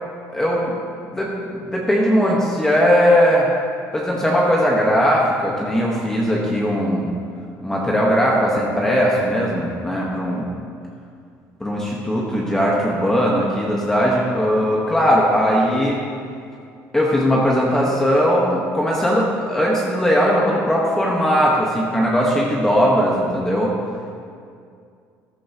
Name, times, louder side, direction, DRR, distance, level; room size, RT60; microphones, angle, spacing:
voice 1, 0.3-0.8 1.1-3.5 3.9-7.2 7.6-10.5 11.6-16.0 16.9-23.7, equal, 10° left, -4 dB, 1.2 m, -19 dB
14.0 x 11.0 x 2.9 m, 2.3 s
cardioid pair, 145°, 6 cm